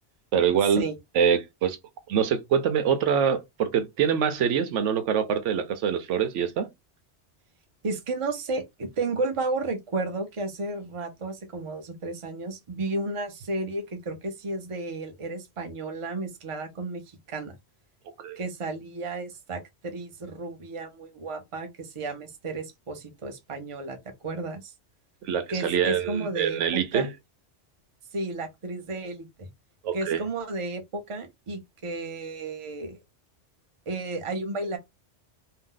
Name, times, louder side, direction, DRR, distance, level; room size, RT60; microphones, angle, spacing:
voice 1, 0.3-0.9 1.1-1.8 2.1-6.7 18.2-18.4 25.2-27.1 29.8-30.2, right 7 dB, 85° right, 0.9 m, -24 dB
voice 2, 7.8-17.5 18.4-24.0 24.2-24.7 25.5-27.1 28.1-29.5 29.9-33.0 33.9-34.8, right 3 dB, 35° right, 0.6 m, -33 dB
2.7 x 2.0 x 3.7 m
omnidirectional pair, 1.2 m